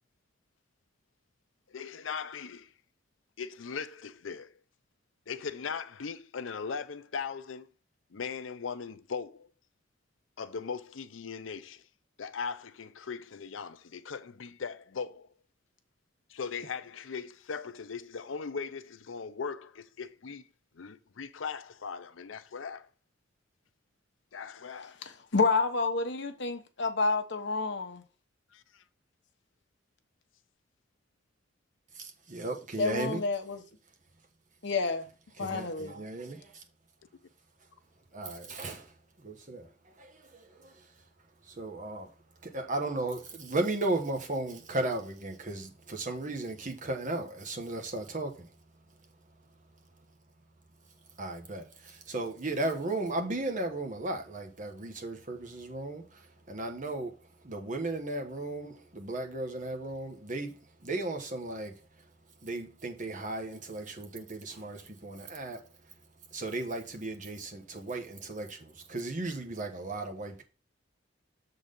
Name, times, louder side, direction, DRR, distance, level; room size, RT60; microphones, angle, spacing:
voice 1, 1.7-2.7 3.4-4.5 5.3-7.7 8.1-9.5 10.4-11.8 12.2-15.3 16.3-20.4 20.7-22.9 24.3-25.0 28.5-28.8, left 5 dB, 85° left, 0.6 m, -39 dB
voice 2, 25.0-28.0 32.8-33.6 34.6-35.1 35.4-36.0, left 3 dB, 65° left, 1.0 m, -29 dB
voice 3, 31.9-33.2 35.4-36.6 38.2-38.9 39.2-40.9 41.4-42.1 42.4-48.5 51.2-57.1 57.4-61.8 62.4-65.7 66.3-70.4, right 2 dB, 40° right, 1.3 m, -35 dB
7.1 x 4.0 x 5.2 m
head